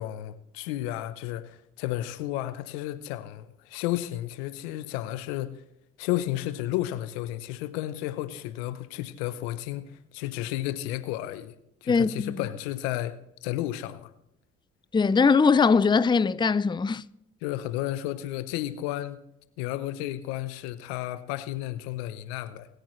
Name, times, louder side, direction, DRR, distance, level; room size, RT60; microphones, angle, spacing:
voice 1, 0.0-5.6 6.0-11.5 11.8-13.2 13.4-14.1 17.4-19.2 19.6-22.7, left 14 dB, 85° left, 0.8 m, -32 dB
voice 2, 11.9-12.3 14.9-17.0, left 5 dB, 15° left, 0.5 m, -21 dB
23.5 x 9.1 x 3.1 m
hypercardioid pair, 45°, 31 cm